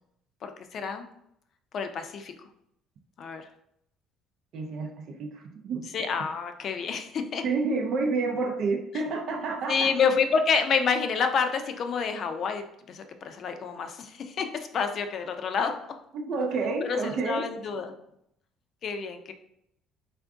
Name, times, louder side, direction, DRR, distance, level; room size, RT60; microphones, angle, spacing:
voice 1, 0.4-1.0 1.7-2.3 3.2-3.5 5.9-7.4 9.7-15.7 16.8-17.9 18.8-19.3, left 5 dB, 55° left, 7 dB, 0.5 m, -28 dB
voice 2, 4.5-5.9 7.4-9.9 16.1-17.5, right 4 dB, 60° right, 3 dB, 0.5 m, -29 dB
3.5 x 2.5 x 3.5 m, 0.76 s
supercardioid pair, 85°, 0 cm